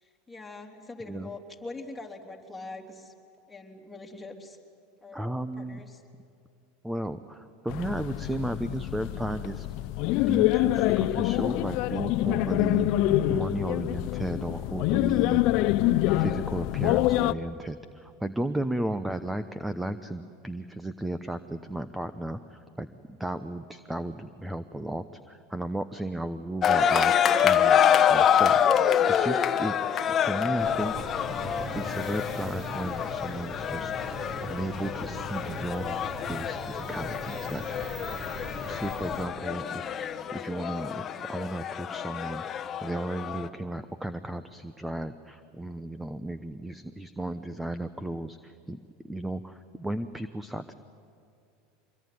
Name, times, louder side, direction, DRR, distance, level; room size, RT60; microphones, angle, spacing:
voice 1, 0.0-3.1 3.5-4.6 5.0-6.0, left 3 dB, 10° left, 0 dB, 3.4 m, -43 dB
voice 2, 5.1-5.8 6.8-9.7 10.2-12.9 13.3-15.4 16.0-27.8 28.1-31.3 31.7-33.9 34.4-36.0 36.3-38.1 38.7-39.8 40.3-48.8 49.0-50.7, right 1 dB, 5° right, 11 dB, 0.9 m, -34 dB
sound 1, 7.7-17.3, left 16 dB, 60° left, 0.7 m, -26 dB
sound 2, 26.6-43.5, left 8 dB, 35° left, 1.1 m, -26 dB
sound 3, 30.6-39.3, equal, 30° right, 3.5 m, -40 dB
25.5 x 21.5 x 9.5 m, 2.4 s
supercardioid pair, 110°, 0 cm